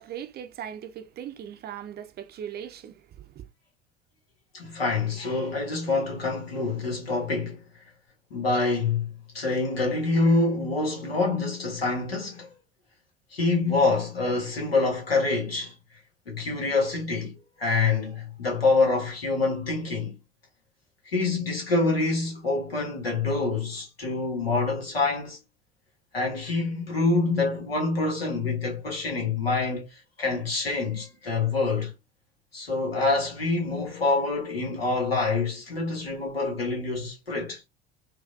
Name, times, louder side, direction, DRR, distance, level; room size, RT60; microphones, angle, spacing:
voice 1, 0.0-3.5, right 9 dB, 35° right, 0.6 m, -39 dB
voice 2, 4.5-7.6 8.3-12.5 13.3-15.7 16.2-20.2 21.0-25.4 26.1-31.9 32.5-37.6, left 3 dB, 80° left, 1.7 m, -26 dB
4.7 x 2.6 x 2.4 m
figure-of-eight pair, 65°, 29 cm